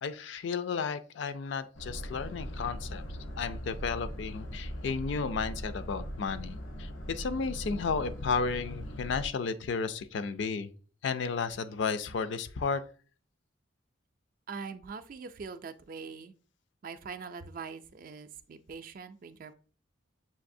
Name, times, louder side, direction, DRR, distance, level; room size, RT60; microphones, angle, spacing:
voice 1, 0.0-3.0 3.4-10.7 11.0-12.8, left 5 dB, 65° left, 0.4 m, -33 dB
Boat Water vehicle, 1.7-9.3, equal, 90° left, 0.9 m, -40 dB
voice 2, 14.5-16.3 16.8-19.5, right 5 dB, 45° right, 0.3 m, -43 dB
6.9 x 2.7 x 2.6 m
head